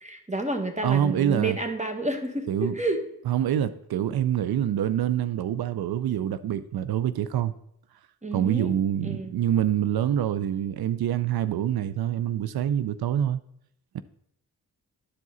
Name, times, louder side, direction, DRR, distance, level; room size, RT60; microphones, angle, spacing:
voice 1, 0.0-3.0 8.2-8.8 9.0-9.4, right 2 dB, 20° right, 1.4 m, -30 dB
voice 2, 0.8-1.6 2.5-2.7 3.3-7.5 8.3-13.4 13.9-14.0, right 10 dB, 70° right, 0.5 m, -26 dB
11.0 x 4.8 x 4.0 m
supercardioid pair, 45°, 39 cm